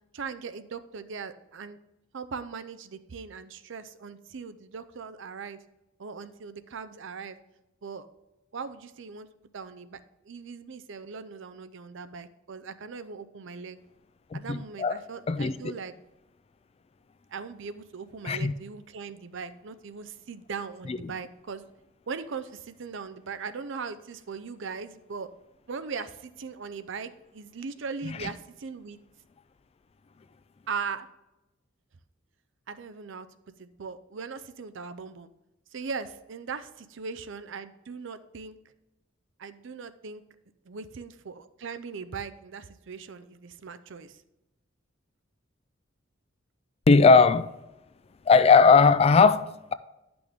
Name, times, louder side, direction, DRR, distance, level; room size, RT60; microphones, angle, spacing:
voice 1, 0.1-1.8 2.1-5.6 6.0-7.4 7.8-8.1 8.5-9.3 9.5-10.0 10.3-13.8 14.3-15.9 17.3-21.7 22.1-25.3 25.7-29.0 30.7-31.1 32.7-33.3 33.6-35.3 35.7-38.6 39.4-40.2 40.7-44.2, right 5 dB, 65° right, 0.6 m, -39 dB
voice 2, 14.3-15.0 15.3-15.7 18.2-18.5 20.9-21.0 28.0-28.3 46.9-47.5 48.3-49.7, left 4 dB, 30° left, 0.3 m, -19 dB
10.0 x 6.0 x 3.5 m
head